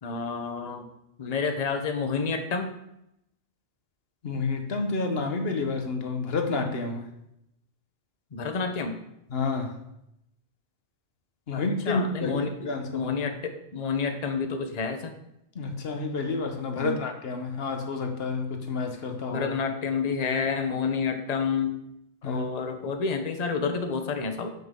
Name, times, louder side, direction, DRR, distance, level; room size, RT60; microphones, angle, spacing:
voice 1, 0.0-0.9 1.2-2.7 8.3-9.0 11.5-12.5 12.9-15.1 16.8-17.0 19.3-21.8 22.2-24.5, left 5 dB, 40° left, 6 dB, 0.9 m, -29 dB
voice 2, 4.2-7.1 9.3-9.8 11.5-13.1 15.5-19.5 22.2-22.5, left 3 dB, 60° left, 4 dB, 1.4 m, -29 dB
9.2 x 7.7 x 3.8 m, 0.81 s
omnidirectional pair, 1.2 m